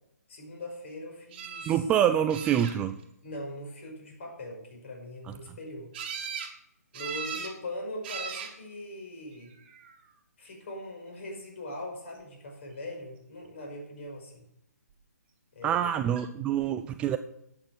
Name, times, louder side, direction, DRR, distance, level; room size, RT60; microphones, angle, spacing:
voice 1, 0.3-1.8 3.2-5.9 6.9-9.5 10.4-14.4 15.5-15.9, left 1 dB, 45° left, 1 dB, 5.6 m, -41 dB
sound 1, 1.3-1.8 2.3-3.0 5.9-6.5 6.9-7.6 8.0-8.5 9.5-9.9 16.2-16.3 16.6-16.7, right 6 dB, 35° right, 2.0 m, -38 dB
voice 2, 1.7-3.0 5.3-5.4 15.6-17.2, right 10 dB, 10° right, 10 dB, 0.3 m, -26 dB
11.5 x 8.8 x 6.1 m, 0.78 s
figure-of-eight pair, 135°, 9 cm